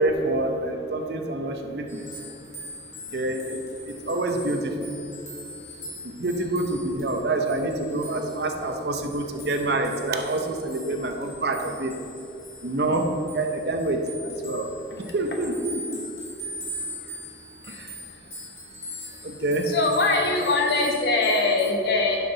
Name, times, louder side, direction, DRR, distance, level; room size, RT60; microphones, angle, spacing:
voice 1, 0.0-2.1 3.1-3.6 3.8-4.9 6.0-11.9 12.6-14.7 15.1-16.0 17.7-17.9 19.2-19.7, right 2 dB, 60° right, 4 dB, 0.7 m, -27 dB
sound 1, 1.9-21.7, equal, 15° left, 1.7 m, -42 dB
voice 2, 19.7-22.2, left 3 dB, 60° left, 1 dB, 1.1 m, -22 dB
10.5 x 5.9 x 3.9 m, 2.6 s
head